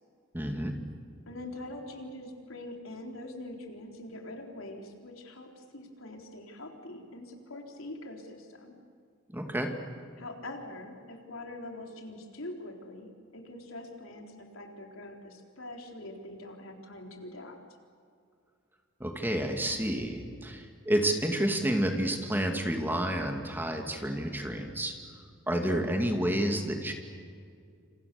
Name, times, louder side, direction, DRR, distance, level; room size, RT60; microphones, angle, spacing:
voice 1, 0.3-0.8 9.3-9.8 19.0-24.9 25.5-26.9, right 1 dB, 10° right, 4 dB, 2.4 m, -30 dB
voice 2, 1.3-8.8 10.2-17.6 25.5-25.9, left 1 dB, 85° left, 2 dB, 3.9 m, -44 dB
28.5 x 28.0 x 7.0 m, 2.3 s
head